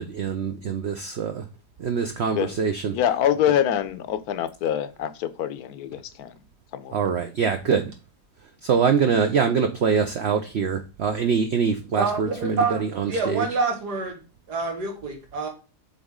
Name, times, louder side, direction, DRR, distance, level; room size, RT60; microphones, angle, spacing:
voice 1, 0.0-1.5 1.8-3.0 6.9-7.9 8.6-13.5, right 6 dB, 60° right, 0.7 m, -24 dB
voice 2, 2.9-6.3 6.7-6.9, left 10 dB, 70° left, 1.1 m, -25 dB
voice 3, 12.0-14.2 14.5-15.5, right 4 dB, 90° right, 2.2 m, -27 dB
7.1 x 4.0 x 3.6 m
omnidirectional pair, 1.7 m